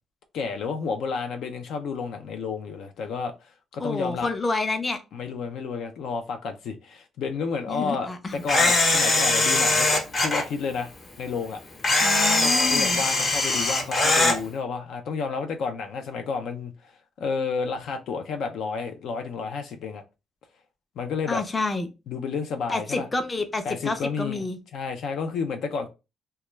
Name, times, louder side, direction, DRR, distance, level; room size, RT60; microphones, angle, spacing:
voice 1, 0.3-4.3 5.1-9.9 10.2-10.9 11.2-11.6 12.7-16.9 17.2-20.0 21.0-21.4 22.1-23.1 23.6-24.4 24.7-25.9, left 5 dB, 75° left, 0.4 m, -31 dB
voice 2, 3.8-5.0 7.7-8.4 12.0-13.1 21.3-21.9 22.7-24.6, left 3 dB, 25° left, 0.5 m, -28 dB
Camera, 8.5-10.4 11.8-14.4, left 2 dB, 45° left, 0.9 m, -21 dB
2.2 x 2.1 x 3.0 m
cardioid pair, 90°, 0 cm